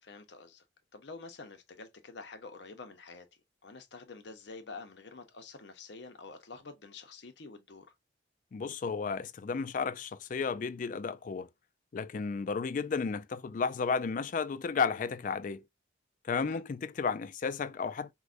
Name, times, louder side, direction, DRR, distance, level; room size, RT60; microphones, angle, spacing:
voice 1, 0.0-0.6 0.9-3.3 3.6-7.9 16.4-16.6, left 4 dB, 60° left, 0.7 m, -48 dB
voice 2, 8.5-11.5 11.9-15.6 16.3-18.1, left 5 dB, 45° left, 0.3 m, -33 dB
4.7 x 2.1 x 2.4 m
head